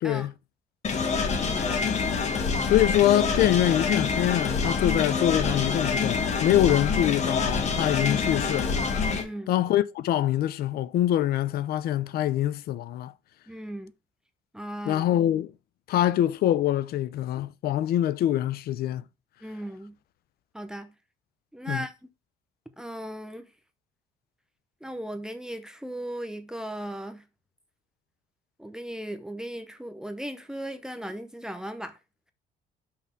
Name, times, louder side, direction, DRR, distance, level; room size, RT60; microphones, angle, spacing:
voice 1, 0.0-0.3 2.6-8.8 9.5-13.1 14.9-15.5 15.9-19.0 21.7-21.8, left 12 dB, 65° left, 0.6 m, -24 dB
sound 1, 0.8-9.2, left 5 dB, 40° left, 1.3 m, -26 dB
voice 2, 1.4-1.8 9.1-9.5 13.5-13.9 14.5-15.1 19.4-19.9 20.5-20.9 21.5-21.9 22.8-23.5 24.8-27.2 28.6-32.0, right 1 dB, 5° right, 0.7 m, -37 dB
5.9 x 3.6 x 5.7 m
cardioid pair, 110°, 17 cm